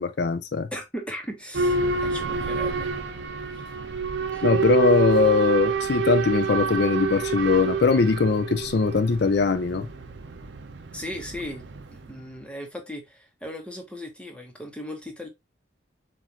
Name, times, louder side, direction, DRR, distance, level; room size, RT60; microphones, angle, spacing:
voice 1, 0.0-0.7 4.4-9.9, left 4 dB, 55° left, 0.4 m, -21 dB
voice 2, 0.7-3.1 3.5-3.7 4.3-4.4 10.9-15.3, equal, 5° left, 1.0 m, -37 dB
Boat Water vehicle / Alarm, 1.5-12.2, right 5 dB, 65° right, 0.7 m, -28 dB
7.3 x 2.5 x 2.8 m
head